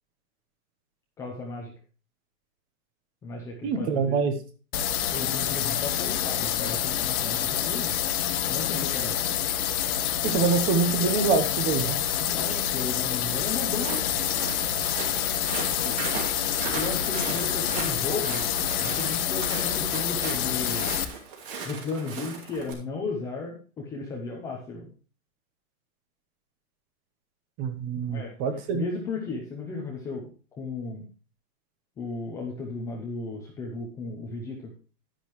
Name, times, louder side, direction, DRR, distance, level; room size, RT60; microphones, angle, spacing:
voice 1, 1.2-1.7 3.2-4.2 5.1-8.0 8.5-9.3 12.2-14.0 15.8-16.0 16.6-18.4 18.8-20.9 21.6-24.9 28.0-28.3 28.7-30.3 30.6-31.1 32.0-34.7, left 3 dB, 5° left, -2 dB, 0.7 m, -35 dB
voice 2, 3.6-4.3 10.2-12.0 27.6-28.8, right 5 dB, 20° right, 9 dB, 0.9 m, -25 dB
sound 1, 4.7-21.0, left 10 dB, 70° left, 1.2 m, -27 dB
Walk footsteps, 13.7-22.7, right 5 dB, 35° right, 2.6 m, -37 dB
10.5 x 10.0 x 3.0 m, 0.36 s
supercardioid pair, 175°, 45 cm